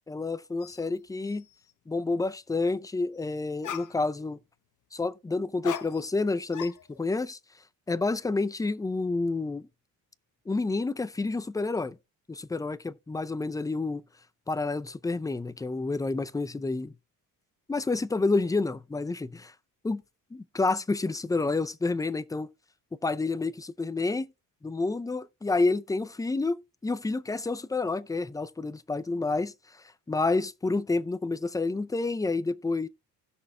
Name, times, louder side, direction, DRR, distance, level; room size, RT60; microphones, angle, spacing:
voice 1, 0.1-1.4 1.9-4.4 4.9-7.4 7.9-9.6 10.5-12.0 12.3-14.0 14.5-16.9 17.7-19.5 19.8-20.0 20.3-22.5 23.0-24.3 24.6-29.5 30.1-32.9, left 3 dB, 10° left, 0.4 m, -29 dB
sound 1, 0.6-0.9 1.3-1.7 3.2-3.3 3.6-4.3 5.6-6.3 6.5-7.3, left 10 dB, 55° left, 0.9 m, -40 dB
16.5 x 6.3 x 2.3 m
cardioid pair, 105°, 38 cm